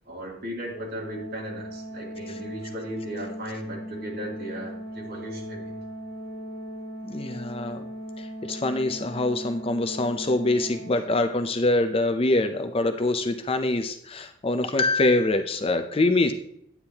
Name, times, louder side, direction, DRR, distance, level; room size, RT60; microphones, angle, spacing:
voice 1, 0.0-5.8, right 1 dB, 50° right, -4 dB, 3.1 m, -37 dB
Organ, 0.7-11.6, equal, 60° left, 2.0 m, -38 dB
voice 2, 7.0-7.8 8.2-16.3, left 2 dB, 30° left, 8 dB, 0.5 m, -24 dB
9.6 x 8.7 x 2.9 m, 0.70 s
head